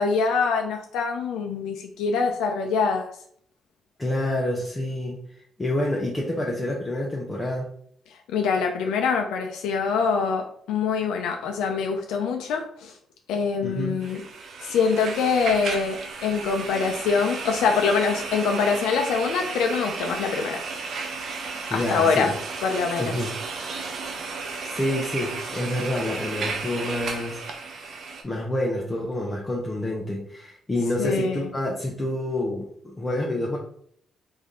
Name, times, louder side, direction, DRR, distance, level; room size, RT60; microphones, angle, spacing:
voice 1, 0.0-3.1 8.3-12.9 13.3-14.2 14.6-20.6 21.7-22.3 22.6-23.1 31.0-31.5, left 5 dB, 90° left, 3 dB, 0.4 m, -24 dB
voice 2, 4.0-5.2 5.6-7.7 13.6-14.0 21.7-22.3 23.0-23.3 24.6-27.9 28.2-33.6, left 1 dB, 20° left, -2 dB, 0.7 m, -28 dB
sound 1, 14.0-28.2, right 4 dB, 65° right, 0.6 m, -34 dB
3.3 x 2.6 x 3.7 m, 0.63 s
cardioid pair, 90°, 0 cm